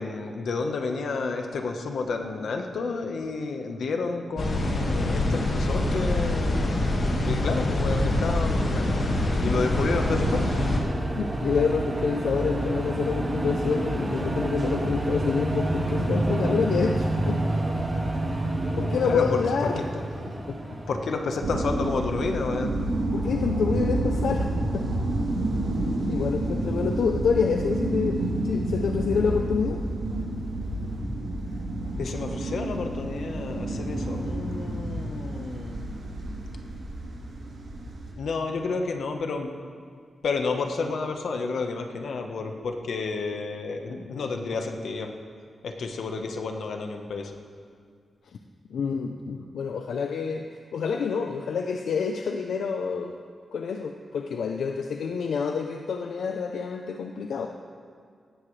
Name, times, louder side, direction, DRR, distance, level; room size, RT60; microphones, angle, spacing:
voice 1, 0.0-6.8 7.0-9.0 9.4-10.5 19.0-19.4 20.9-22.7 32.0-35.8 38.2-39.5 40.2-45.1 45.6-47.4, left 4 dB, 70° left, 4 dB, 1.2 m, -30 dB
sound 1, 4.4-10.8, left 1 dB, 45° left, 1.9 m, -25 dB
sound 2, 7.5-22.0, right 1 dB, 20° right, 1.6 m, -29 dB
voice 2, 11.1-17.4 18.7-19.8 20.5-20.6 23.1-24.8 26.1-29.8 48.7-53.2 53.5-57.5, left 5 dB, 85° left, 4 dB, 0.6 m, -27 dB
sound 3, 21.4-38.1, right 1 dB, 85° right, 2.9 m, -29 dB
17.5 x 13.5 x 3.3 m, 2.1 s
wide cardioid pair, 165°, 0 cm